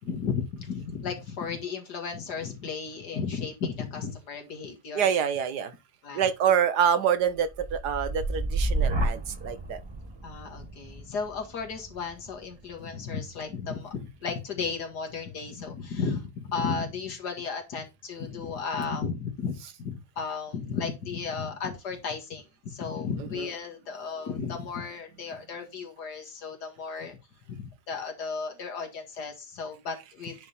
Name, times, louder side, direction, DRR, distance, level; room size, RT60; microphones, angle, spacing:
voice 1, 0.0-5.1 6.0-6.3 10.2-27.2 27.5-30.4, left 5 dB, 90° left, 2.4 m, -34 dB
voice 2, 4.9-5.7 6.1-9.8 23.3-23.5, right 8 dB, 80° right, 1.5 m, -26 dB
sound 1, 7.3-15.3 15.8-16.2, right 2 dB, 15° right, 1.4 m, -33 dB
9.6 x 3.5 x 4.2 m
omnidirectional pair, 1.7 m